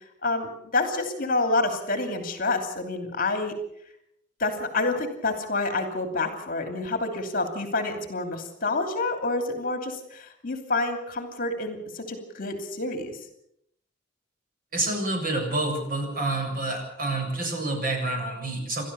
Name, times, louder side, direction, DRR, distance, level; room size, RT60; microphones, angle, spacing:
voice 1, 0.2-3.5 4.4-13.2, left 2 dB, 50° left, 6 dB, 2.9 m, -28 dB
voice 2, 14.7-18.8, right 2 dB, 50° right, 2 dB, 7.4 m, -28 dB
29.5 x 13.0 x 7.0 m, 0.74 s
head